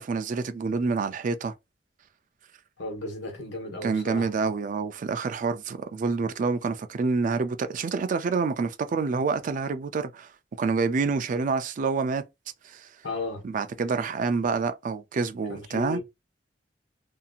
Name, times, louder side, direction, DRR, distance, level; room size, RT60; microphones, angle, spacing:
voice 1, 0.0-1.5 3.8-10.3 10.6-12.2 12.6-12.9 13.4-16.0, right 4 dB, 45° right, 0.3 m, -27 dB
voice 2, 2.8-4.3 13.0-13.4 15.5-16.0, left 2 dB, 80° left, 1.1 m, -34 dB
2.8 x 2.6 x 2.3 m
head